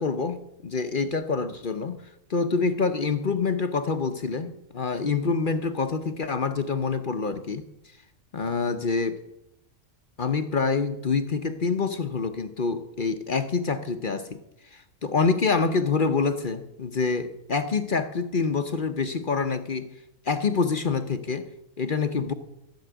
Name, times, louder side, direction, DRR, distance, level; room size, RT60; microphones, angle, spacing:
voice 1, 0.0-2.0 2.3-7.6 8.3-9.2 10.2-14.4 14.7-19.9 20.2-21.5 21.8-22.3, left 4 dB, 45° left, 9 dB, 0.8 m, -26 dB
14.5 x 7.2 x 9.1 m, 0.82 s
omnidirectional pair, 1.5 m